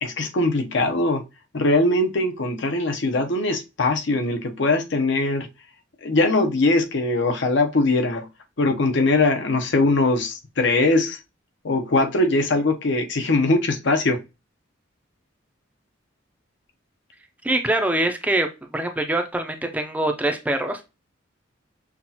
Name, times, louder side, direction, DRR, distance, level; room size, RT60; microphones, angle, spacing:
voice 1, 0.0-1.2 1.5-5.5 6.0-8.3 8.6-11.2 11.6-14.2, left 2 dB, 65° left, 0.7 m, -21 dB
voice 2, 17.4-20.9, right 1 dB, 10° right, 0.4 m, -24 dB
5.9 x 2.4 x 2.7 m
head